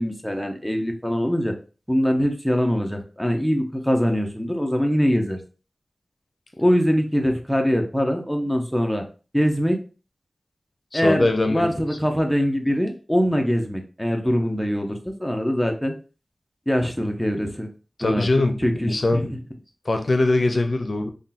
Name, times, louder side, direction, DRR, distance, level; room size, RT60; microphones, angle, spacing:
voice 1, 0.0-1.5 1.9-5.4 6.6-9.0 9.3-9.8 10.9-15.9 16.7-17.7 18.0-18.2 18.6-19.4, equal, 5° left, 3 dB, 0.8 m, -23 dB
voice 2, 10.9-11.8 18.0-19.3 19.9-21.1, left 2 dB, 65° left, 6 dB, 0.6 m, -22 dB
3.6 x 2.3 x 2.6 m, 0.35 s
wide cardioid pair, 55°, 0 cm